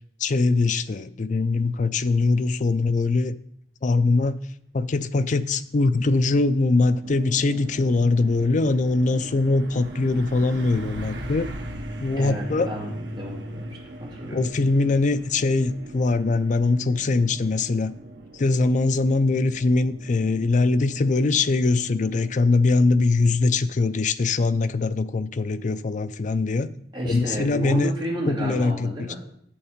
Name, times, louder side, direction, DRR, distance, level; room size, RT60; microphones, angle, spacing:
voice 1, 0.2-3.4 3.8-4.4 4.7-11.5 12.0-12.7 14.3-17.9 18.3-26.7 27.0-27.9 28.3-29.2, left 3 dB, 45° left, 13 dB, 0.4 m, -22 dB
Truck, 6.6-20.9, equal, 85° right, 1.3 m, -41 dB
sound 1, 7.0-22.3, right 2 dB, 65° right, 0.7 m, -44 dB
voice 2, 12.2-14.4 26.9-29.2, equal, 25° right, -3 dB, 2.5 m, -32 dB
8.0 x 7.0 x 5.1 m, 0.68 s
head